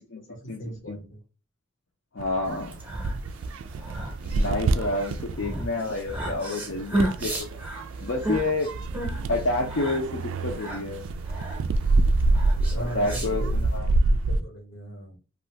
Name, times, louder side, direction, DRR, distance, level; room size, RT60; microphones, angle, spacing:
voice 1, 0.3-1.2 12.7-15.2, right 1 dB, 85° left, 1 dB, 1.3 m, -38 dB
voice 2, 2.1-2.7 4.3-7.5 8.0-8.7 9.3-11.0 12.7-13.9, left 2 dB, 65° left, -1 dB, 0.6 m, -29 dB
sound 1, 2.2-14.4, right 2 dB, 80° right, 0.3 m, -27 dB
sound 2, 2.6-13.8, right 1 dB, 10° right, 0.7 m, -33 dB
2.7 x 2.4 x 3.2 m, 0.33 s
head